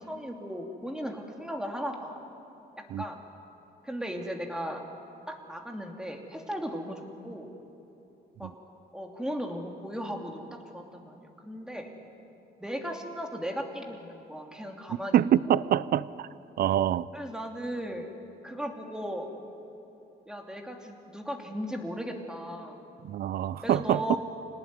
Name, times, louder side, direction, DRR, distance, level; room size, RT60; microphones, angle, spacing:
voice 1, 0.0-2.2 3.0-3.2 3.8-4.8 5.3-7.5 8.4-8.5 8.9-11.9 12.6-15.2 15.5-15.9 17.1-18.1 18.4-19.3 20.3-22.9 23.6-24.2, equal, 5° right, 2.9 m, -36 dB
voice 2, 15.1-16.3 16.6-17.1 23.0-24.2, right 11 dB, 60° right, 0.6 m, -25 dB
27.5 x 19.0 x 9.6 m
cardioid pair, 125°, 18 cm